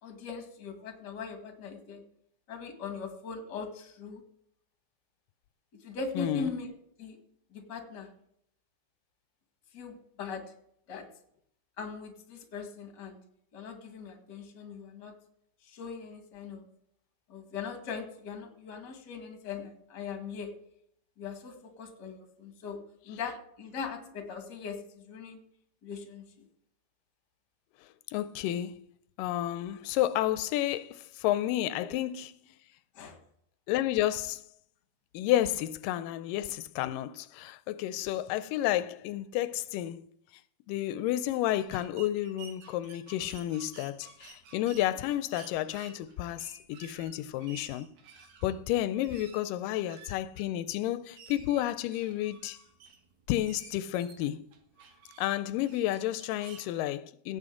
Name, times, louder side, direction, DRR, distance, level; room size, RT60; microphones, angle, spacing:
voice 1, 0.0-2.0 2.5-4.2 5.7-6.7 7.0-7.2 7.5-8.1 9.7-10.4 10.9-11.1 11.8-13.2 13.5-15.1 15.6-16.7 17.3-20.5 21.2-25.4 25.8-26.5 31.8-31.9 32.9-33.2, left 5 dB, 40° left, 1.9 m, -40 dB
voice 2, 6.2-6.5 28.1-28.8 29.2-32.3 33.7-34.4 35.1-40.1 40.7-47.9 48.4-52.6 53.3-54.4 55.2-57.4, left 13 dB, 90° left, 2.2 m, -31 dB
sound 1, 41.5-56.7, right 6 dB, 65° right, 2.6 m, -54 dB
17.0 x 8.1 x 3.7 m
omnidirectional pair, 3.8 m